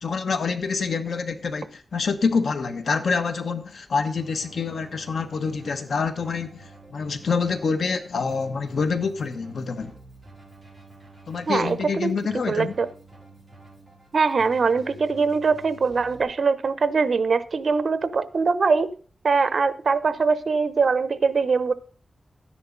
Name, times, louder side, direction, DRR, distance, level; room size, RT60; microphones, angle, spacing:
voice 1, 0.0-9.9 11.3-12.8, left 5 dB, 85° left, 1.3 m, -26 dB
Keyboard (musical), 4.1-16.2, right 1 dB, ahead, 7.5 m, -49 dB
voice 2, 11.5-12.2 12.5-12.9 14.1-18.9 19.2-21.7, right 4 dB, 65° right, 0.9 m, -22 dB
12.5 x 10.0 x 4.0 m
wide cardioid pair, 95°, 0 cm